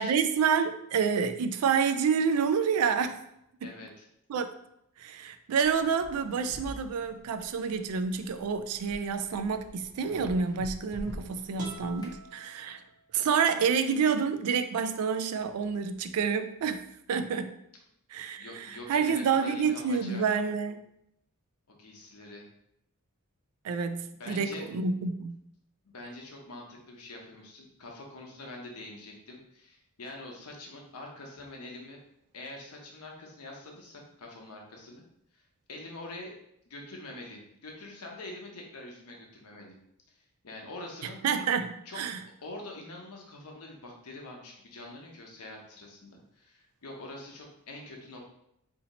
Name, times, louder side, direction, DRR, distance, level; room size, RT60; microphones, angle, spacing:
voice 1, 0.0-3.2 3.6-3.7 4.3-4.5 5.0-12.8 13.1-16.8 17.1-17.6 18.1-20.8 23.6-25.4 41.2-42.2, right 6 dB, 75° right, 9 dB, 0.3 m, -28 dB
voice 2, 3.6-4.0 18.4-20.2 21.7-22.5 24.1-24.7 25.8-32.0 32.3-35.0 35.3-35.4 35.7-36.3 36.7-39.7 40.1-41.2 41.9-42.0 42.4-48.2, left 2 dB, 80° left, 0 dB, 0.9 m, -45 dB
sound 1, 5.6-12.2, equal, 20° left, 0.4 m, -46 dB
sound 2, 11.6-13.5, right 3 dB, 35° right, 0.8 m, -47 dB
2.8 x 2.8 x 4.0 m, 0.77 s
head